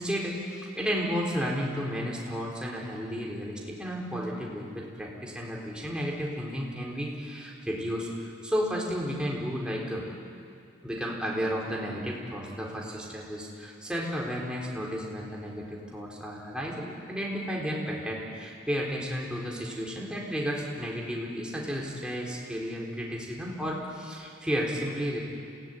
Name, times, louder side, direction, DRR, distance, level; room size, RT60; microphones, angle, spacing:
voice 1, 0.0-10.0 10.8-25.2, equal, 5° right, -3 dB, 4.1 m, -33 dB
27.0 x 17.5 x 9.7 m, 2.4 s
head